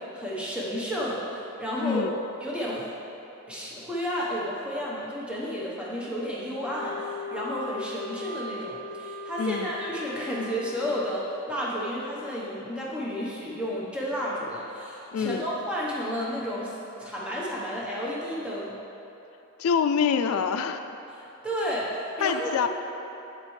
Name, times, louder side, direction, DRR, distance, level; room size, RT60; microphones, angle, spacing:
voice 1, 0.0-2.0 2.4-2.9 3.5-18.8 21.4-22.7, equal, 5° right, -6 dB, 1.0 m, -32 dB
voice 2, 1.8-2.2 9.4-9.7 15.1-15.4 19.6-20.8 22.2-22.7, left 6 dB, 80° left, 8 dB, 0.3 m, -25 dB
Wind instrument woodwind instrument, 6.6-11.1, left 3 dB, 35° left, 0.9 m, -38 dB
8.8 x 7.4 x 3.2 m, 3.0 s
head